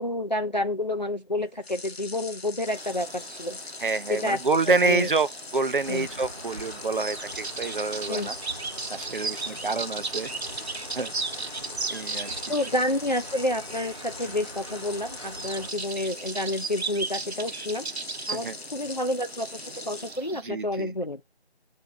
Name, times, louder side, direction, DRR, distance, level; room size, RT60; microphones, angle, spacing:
voice 1, 0.0-3.6 4.1-4.4 4.7-5.1 5.9-6.1 8.1-8.3 12.5-17.9 18.3-21.2, left 1 dB, 45° left, 0.4 m, -29 dB
sound 1, 1.6-20.2, left 4 dB, 70° left, 0.8 m, -42 dB
sound 2, 2.7-20.4, right 4 dB, 85° right, 0.8 m, -37 dB
voice 2, 3.8-8.3 8.9-10.3 11.0-11.1 11.9-12.3 18.3-18.5 20.4-20.9, right 3 dB, 55° right, 0.5 m, -27 dB
sound 3, 5.8-15.7, right 1 dB, 35° right, 0.9 m, -44 dB
8.0 x 2.7 x 5.8 m
figure-of-eight pair, 170°, 32 cm